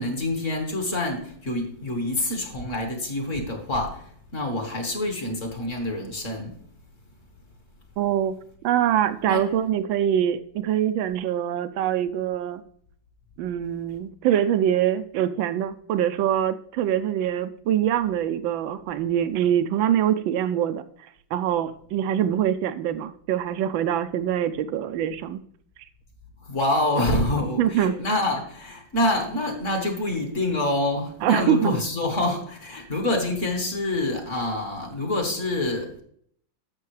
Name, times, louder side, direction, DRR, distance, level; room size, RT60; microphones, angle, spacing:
voice 1, 0.0-6.6 9.3-9.4 26.4-36.0, left 1 dB, 40° left, 3 dB, 1.7 m, -26 dB
voice 2, 8.0-8.3 8.6-12.6 13.4-20.8 21.3-25.4 27.6-28.0 31.2-31.7, right 10 dB, 80° right, 12 dB, 1.3 m, -24 dB
11.5 x 7.3 x 3.2 m, 0.63 s
omnidirectional pair, 2.1 m